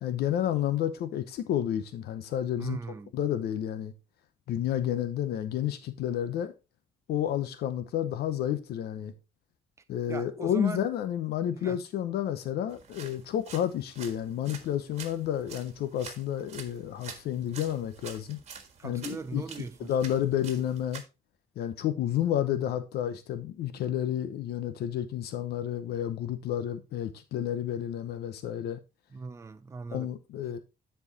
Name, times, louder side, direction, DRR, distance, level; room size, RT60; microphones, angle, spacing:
voice 1, 0.0-2.8 3.1-3.9 4.5-6.5 7.1-9.1 9.9-18.4 18.8-19.4 19.8-21.0 21.6-28.8 29.9-30.6, left 10 dB, 90° left, 0.8 m, -30 dB
voice 2, 2.6-3.1 10.1-10.8 11.5-11.8 18.8-19.9 29.1-30.1, right 4 dB, 20° right, 0.6 m, -39 dB
sound 1, 12.7-21.0, right 6 dB, 40° right, 1.6 m, -47 dB
10.0 x 4.6 x 3.9 m
cardioid pair, 160°, 16 cm